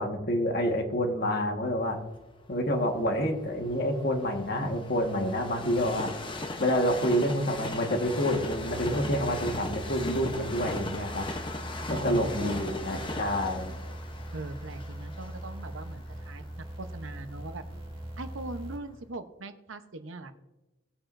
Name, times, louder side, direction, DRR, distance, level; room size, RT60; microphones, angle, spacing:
voice 1, 0.0-2.0 2.5-6.1 6.5-11.3 11.9-13.8, equal, 50° left, 3 dB, 1.6 m, -28 dB
Train, 2.2-18.1 18.7-18.8, left 2 dB, 25° left, 0.8 m, -39 dB
sound 1, 8.3-18.8, right 1 dB, 30° right, 2.2 m, -41 dB
voice 2, 11.9-13.0 14.3-17.6 18.2-20.3, right 2 dB, 85° right, 8 dB, 0.9 m, -40 dB
19.0 x 8.8 x 2.6 m, 1.1 s
head